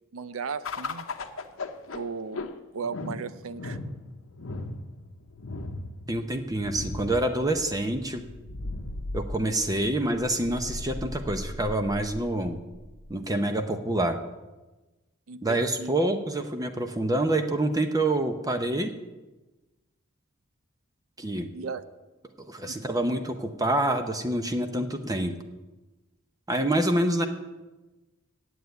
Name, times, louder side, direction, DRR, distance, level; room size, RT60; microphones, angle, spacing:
voice 1, 0.1-1.1 1.9-2.4 2.7-3.8 15.3-15.9 21.5-21.8 22.6-23.0, right 5 dB, 80° right, 14 dB, 0.6 m, -36 dB
sound 1, 0.6-13.3, left 2 dB, 75° left, 0.9 m, -38 dB
voice 2, 6.1-8.2 9.1-12.6 13.1-14.2 15.4-18.9 21.2-21.5 22.4-25.3 26.5-27.3, right 1 dB, 20° right, 7 dB, 0.8 m, -27 dB
9.4 x 8.0 x 9.3 m, 1.1 s
head